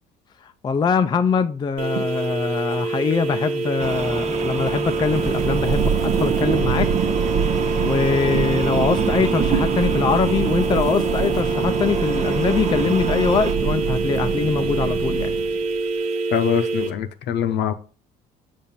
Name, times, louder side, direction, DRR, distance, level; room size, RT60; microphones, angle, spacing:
voice 1, 0.6-6.9 7.8-15.3, left 5 dB, 20° left, 0.4 m, -23 dB
sound 1, 1.8-16.9, right 3 dB, 90° right, 0.8 m, -26 dB
sound 2, 3.8-13.5, right 4 dB, 35° right, 1.1 m, -30 dB
Thunder, 4.9-15.8, right 8 dB, 50° right, 0.5 m, -25 dB
voice 2, 16.3-17.7, left 9 dB, 65° left, 0.7 m, -23 dB
6.9 x 2.5 x 5.6 m
cardioid pair, 100°, 19 cm